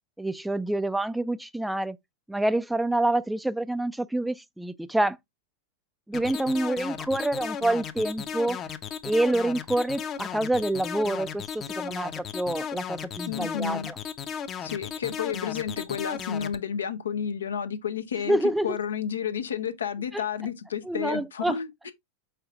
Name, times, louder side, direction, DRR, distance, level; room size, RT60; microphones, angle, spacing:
voice 1, 0.2-2.0 2.3-5.2 6.1-8.6 9.0-14.0 18.3-18.8 20.1-20.2 20.9-21.6, right 1 dB, 5° right, 0.3 m, -27 dB
sound 1, 6.1-16.5, left 8 dB, 35° left, 0.6 m, -35 dB
voice 2, 13.3-13.9 14.6-18.4 18.6-21.9, left 8 dB, 80° left, 0.6 m, -31 dB
4.8 x 4.5 x 2.4 m
hypercardioid pair, 95°, 0 cm